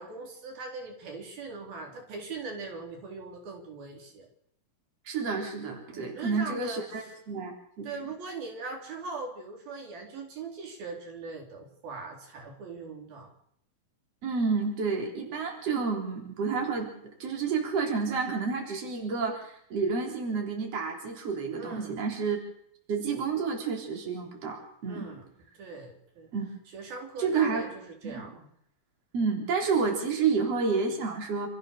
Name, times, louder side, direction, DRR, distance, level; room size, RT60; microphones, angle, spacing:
voice 1, 0.0-4.3 5.9-7.1 7.8-13.3 21.6-22.0 24.9-25.3 25.6-26.3 26.7-28.5, right 3 dB, 85° right, 1 dB, 5.8 m, -40 dB
voice 2, 5.1-7.9 14.2-16.9 17.2-22.4 22.9-25.1 26.3-26.5 27.2-27.7 28.0-28.3 29.1-31.5, right 5 dB, 45° right, 1 dB, 4.6 m, -30 dB
29.0 x 14.5 x 6.7 m, 0.70 s
omnidirectional pair, 4.1 m